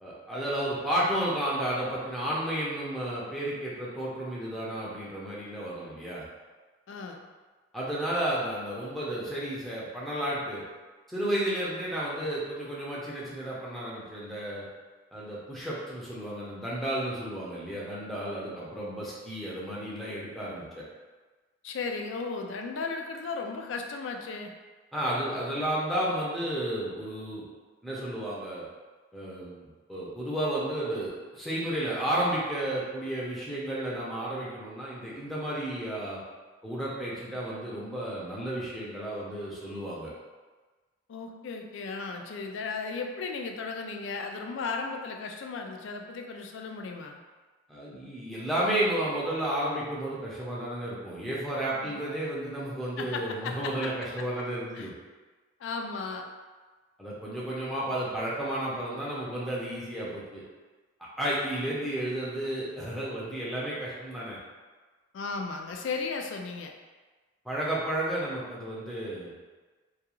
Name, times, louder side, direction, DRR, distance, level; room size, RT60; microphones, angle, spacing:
voice 1, 0.0-6.2 7.7-10.6 11.1-14.7 15.1-20.8 24.9-27.4 27.8-28.6 29.1-29.6 29.9-36.2 36.6-40.1 47.7-54.9 57.0-60.4 61.2-64.4 67.4-69.3, right 1 dB, ahead, -7 dB, 0.5 m, -32 dB
voice 2, 6.9-7.3 21.6-24.5 41.1-47.2 51.8-52.0 53.0-53.7 54.7-54.9 55.6-56.3 65.1-66.7, left 4 dB, 65° left, 3 dB, 0.3 m, -35 dB
2.3 x 2.3 x 2.9 m, 1.3 s
head